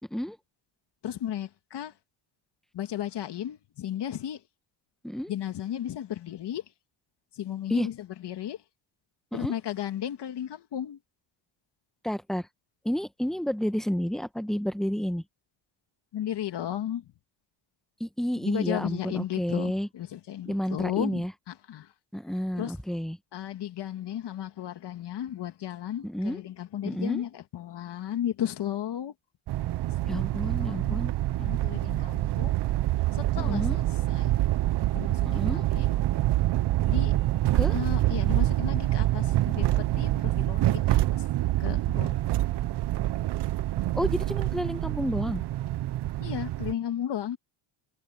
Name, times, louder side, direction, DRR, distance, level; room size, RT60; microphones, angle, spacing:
voice 1, 1.0-1.9 2.7-4.4 5.3-6.7 7.3-8.6 9.3-11.0 16.1-17.1 18.4-21.9 22.5-22.8 23.3-29.1 30.0-32.6 33.1-34.4 34.9-35.9 36.9-37.2 37.7-41.3 41.6-42.8 46.2-47.4, left 11 dB, 60° left, 1.9 m, -35 dB
voice 2, 12.0-12.5 12.8-15.2 18.0-19.9 20.5-21.3 22.1-23.2 26.0-26.4 26.8-27.2 30.1-31.1 33.4-33.8 35.2-35.6 37.5-37.7 43.9-45.4, equal, ahead, 1.3 m, -30 dB
sound 1, 29.5-46.7, right 15 dB, 60° right, 0.8 m, -26 dB
cardioid pair, 95°, 47 cm